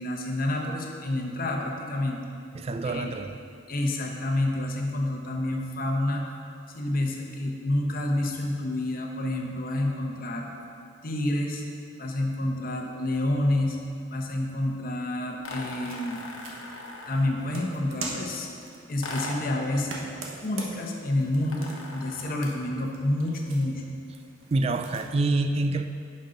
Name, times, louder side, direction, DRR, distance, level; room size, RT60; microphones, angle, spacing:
voice 1, 0.0-2.2 2.8-3.1 3.7-6.2 6.7-10.5 11.0-11.6 12.0-13.8 14.1-16.2 17.1-18.5 18.9-19.9 20.4-23.8, left 1 dB, 45° left, 1 dB, 0.9 m, -28 dB
voice 2, 2.5-3.4 24.5-25.9, right 2 dB, 30° right, 8 dB, 0.3 m, -26 dB
sound 1, 15.4-17.4 19.0-19.6 21.4-22.4, left 1 dB, 85° left, 1.0 m, -39 dB
sound 2, 15.5-25.1, right 2 dB, 90° right, 1.2 m, -43 dB
10.5 x 5.4 x 3.9 m, 2.4 s
head